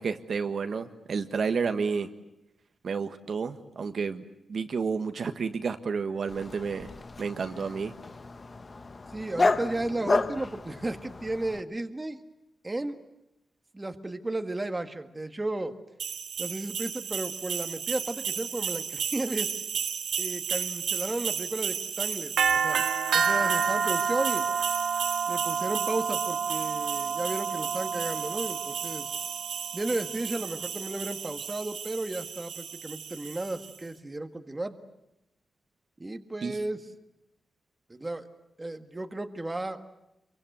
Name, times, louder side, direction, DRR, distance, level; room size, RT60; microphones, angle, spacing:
voice 1, 0.0-2.1 2.8-4.2 4.5-6.9 7.2-7.9 36.4-36.6, right 5 dB, 55° right, 8 dB, 1.5 m, -30 dB
Dog, 6.3-11.6, left 3 dB, 30° left, 1.3 m, -31 dB
voice 2, 9.1-12.2 12.6-13.0 13.7-15.8 16.4-19.5 20.2-22.3 22.6-22.8 23.1-24.5 25.3-29.1 29.7-34.7 36.0-36.8 37.9-38.3 38.6-39.8, right 2 dB, 20° right, 7 dB, 1.8 m, -34 dB
sound 1, 16.0-33.7, right 6 dB, 90° right, 1.9 m, -30 dB
28.0 x 24.0 x 8.0 m, 0.90 s
wide cardioid pair, 125°, 0 cm